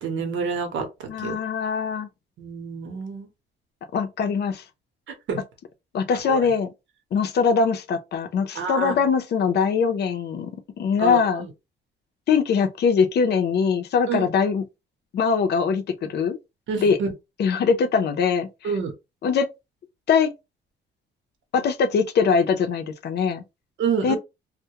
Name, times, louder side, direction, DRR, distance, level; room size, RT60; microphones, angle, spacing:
voice 1, 0.0-0.8 1.2-1.4 2.4-3.3 5.3-5.4 6.2-6.5 8.5-9.0 11.0-11.5 14.1-14.3 16.7-17.1 18.6-18.9 23.8-24.2, right 5 dB, 70° right, 0.9 m, -27 dB
voice 2, 1.1-2.1 3.9-4.6 5.9-6.7 7.1-10.5 10.8-11.5 12.3-14.6 15.1-16.4 16.8-17.0 17.4-18.7 19.2-19.5 20.1-20.3 21.5-23.4 24.0-24.2, left 6 dB, 55° left, 0.5 m, -22 dB
2.2 x 2.1 x 2.8 m
cardioid pair, 90°, 20 cm